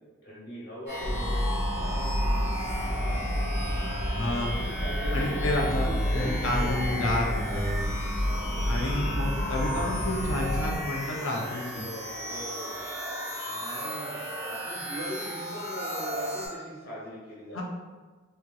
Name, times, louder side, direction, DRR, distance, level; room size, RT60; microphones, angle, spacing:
voice 1, 0.2-1.5 1.7-3.6 4.5-6.9 8.4-8.9 9.5-10.9 11.7-12.9 13.5-14.2 14.5-17.6, equal, 55° left, -7 dB, 1.0 m, -41 dB
sound 1, 0.9-16.5, equal, 15° right, 0.8 m, -35 dB
sound 2, 1.0-10.8, equal, 85° right, 0.7 m, -30 dB
voice 2, 4.1-4.5 5.1-7.9 8.7-11.8 17.5-17.6, left 1 dB, 80° left, -1 dB, 0.6 m, -30 dB
3.2 x 2.9 x 2.3 m, 1.3 s
head